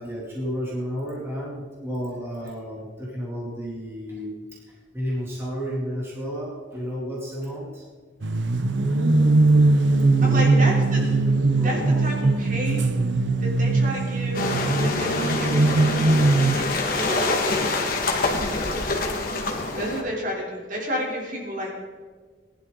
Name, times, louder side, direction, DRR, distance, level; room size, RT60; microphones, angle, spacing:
voice 1, 0.0-7.8 10.2-10.6 11.5-12.1, equal, 15° right, -6 dB, 2.7 m, -32 dB
sound 1, 8.2-16.6, right 3 dB, 75° right, 0.8 m, -20 dB
voice 2, 10.2-11.0 11.6-12.9 13.4-14.5 14.7-18.7 19.8-21.7, equal, 45° right, -2 dB, 3.5 m, -32 dB
sound 2, 14.3-20.0, left 3 dB, 50° left, 1.8 m, -25 dB
19.5 x 11.5 x 3.9 m, 1.5 s
head